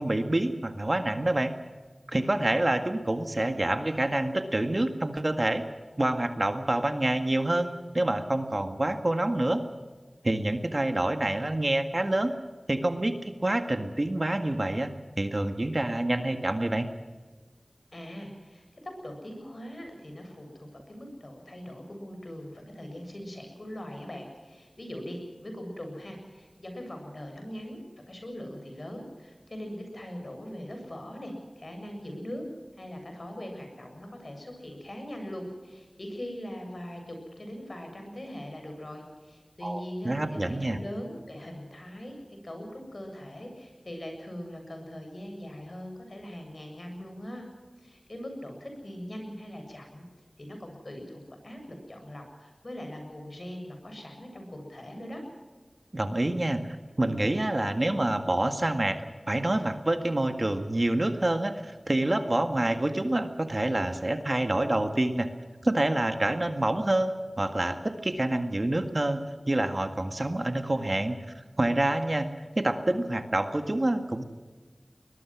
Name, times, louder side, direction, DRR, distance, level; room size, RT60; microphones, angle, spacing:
voice 1, 0.0-1.5 2.1-5.7 6.0-9.7 10.2-12.3 12.7-14.9 15.2-16.9 39.6-40.8 55.9-56.6 57.0-59.0 59.3-65.3 65.6-74.2, right 1 dB, 45° right, 7 dB, 1.9 m, -27 dB
voice 2, 17.9-27.8 28.1-32.5 32.7-47.4 47.8-50.1 50.4-55.2, equal, 60° left, 4 dB, 7.3 m, -41 dB
21.5 x 21.0 x 6.2 m, 1.4 s
wide cardioid pair, 45°, 0 cm